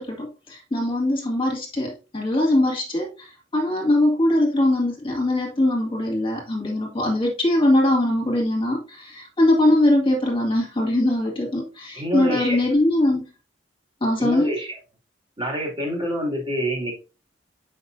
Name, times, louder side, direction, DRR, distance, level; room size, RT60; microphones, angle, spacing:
voice 1, 0.0-13.3 14.0-14.5, left 1 dB, 30° left, 2.2 m, -21 dB
voice 2, 12.0-12.7 14.2-14.7 15.4-16.9, equal, 25° right, 2.5 m, -27 dB
8.0 x 5.6 x 2.6 m
head